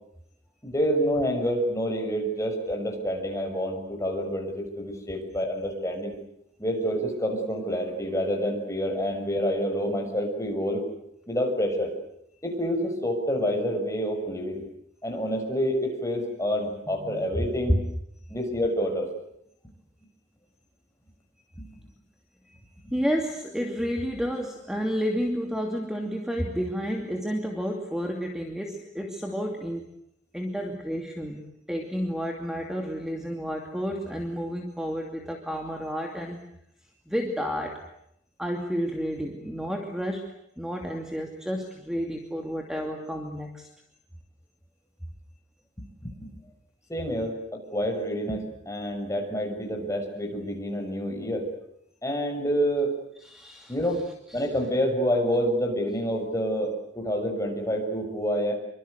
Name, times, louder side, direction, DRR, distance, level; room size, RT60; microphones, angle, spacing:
voice 1, 0.6-6.1 6.6-10.8 11.3-11.9 12.4-14.6 15.0-17.7 18.3-19.1 21.6-21.7 22.8-22.9 45.8-46.3 46.9-51.5 52.0-52.9 53.7-54.0 54.3-58.5, equal, 15° left, 2 dB, 6.6 m, -28 dB
voice 2, 22.9-29.9 30.3-31.4 31.7-36.5 37.1-37.9 38.4-43.7 53.2-53.7 54.3-54.5, equal, 5° right, 2 dB, 2.6 m, -30 dB
26.5 x 24.5 x 8.1 m, 0.75 s
head